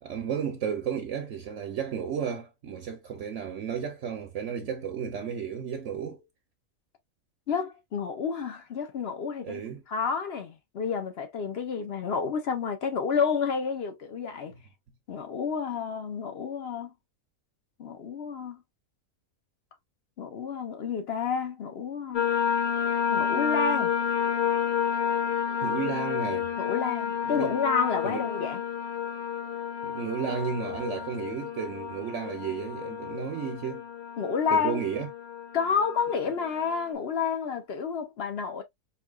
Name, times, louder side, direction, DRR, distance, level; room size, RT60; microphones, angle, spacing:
voice 1, 0.0-6.2 9.4-9.8 25.6-26.5 27.2-27.6 28.0-28.2 29.8-33.8 34.5-35.1, right 7 dB, 60° right, 1.0 m, -33 dB
voice 2, 7.5-9.6 9.9-14.5 15.1-16.9 17.8-18.6 20.2-22.3 23.1-23.9 26.6-28.6 34.2-34.8 35.5-38.6, left 6 dB, 50° left, 1.0 m, -30 dB
sound 1, 22.1-36.8, left 8 dB, 70° left, 0.4 m, -30 dB
4.7 x 2.8 x 2.3 m
omnidirectional pair, 1.5 m